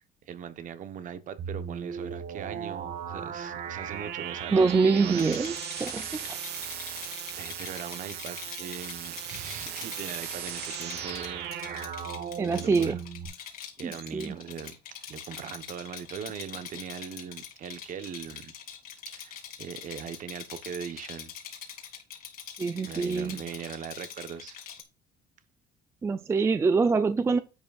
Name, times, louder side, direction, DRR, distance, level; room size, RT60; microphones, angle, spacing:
voice 1, 0.0-5.2 5.8-6.3 7.3-12.1 12.6-12.9 13.8-18.5 19.1-21.3 22.8-24.6, right 8 dB, 45° right, 1.0 m, -40 dB
sound 1, 1.4-13.3, right 8 dB, 65° right, 1.5 m, -37 dB
voice 2, 4.5-6.0 12.4-13.0 13.8-14.3 22.6-23.4 26.0-27.4, right 4 dB, 15° right, 0.3 m, -25 dB
Rattle, 5.1-24.8, left 9 dB, 55° left, 2.1 m, -44 dB
10.0 x 7.6 x 2.4 m
cardioid pair, 135°, 18 cm